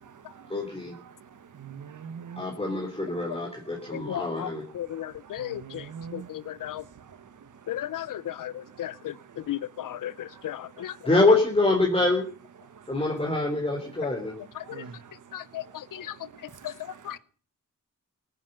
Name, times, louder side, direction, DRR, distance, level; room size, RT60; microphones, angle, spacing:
voice 1, 0.5-0.9 2.4-4.6 11.1-12.2 12.9-14.3, left 2 dB, 20° left, 3.7 m, -25 dB
voice 2, 1.6-2.4 5.4-6.3 14.7-15.0 16.6-17.1, right 7 dB, 70° right, 1.4 m, -42 dB
voice 3, 3.9-4.5 4.7-5.8 6.1-6.8 7.7-8.5 8.8-9.1 9.5-10.1 10.4-10.9 15.3-15.6 16.0-16.1 17.1-17.2, left 12 dB, 85° left, 0.8 m, -34 dB
18.0 x 9.5 x 8.0 m
cardioid pair, 90°, 31 cm